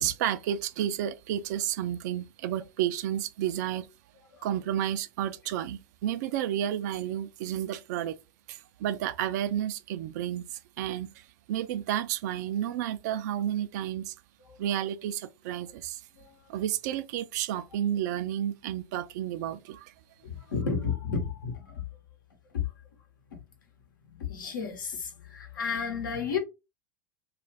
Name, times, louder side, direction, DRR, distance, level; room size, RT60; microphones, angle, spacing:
voice 1, 0.0-3.9 4.4-8.2 8.5-14.1 14.6-16.0 16.5-19.9, right 11 dB, 55° right, 0.4 m, -31 dB
voice 2, 20.2-21.8 22.5-22.6 24.1-26.4, left 6 dB, 75° left, 1.0 m, -32 dB
2.4 x 2.4 x 3.2 m
hypercardioid pair, 95°, 11 cm